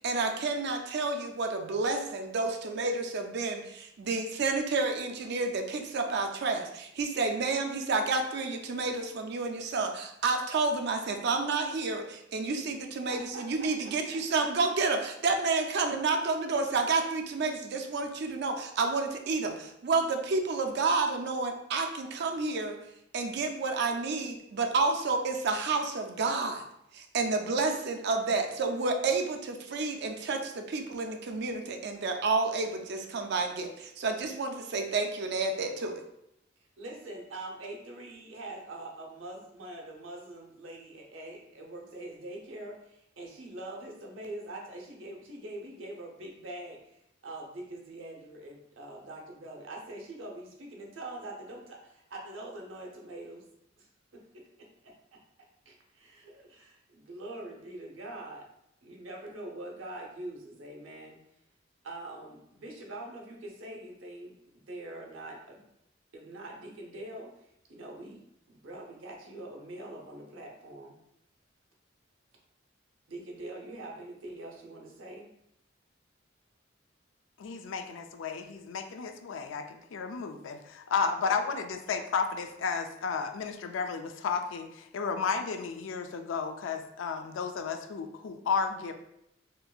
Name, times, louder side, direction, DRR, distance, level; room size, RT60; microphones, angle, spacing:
voice 1, 0.0-22.8 23.1-26.6 26.9-36.0, right 3 dB, 60° right, 5 dB, 0.4 m, -30 dB
voice 2, 13.1-14.5 36.8-53.4 53.8-53.9 54.1-54.2 54.6-54.9 55.7-58.5 58.8-61.2 61.8-64.4 64.7-65.6 66.1-67.3 67.7-71.0 73.1-75.3 81.2-81.4, right 1 dB, 85° right, 0 dB, 0.8 m, -44 dB
voice 3, 77.4-88.9, left 5 dB, 75° left, 7 dB, 0.4 m, -33 dB
4.4 x 2.5 x 2.3 m, 0.78 s
head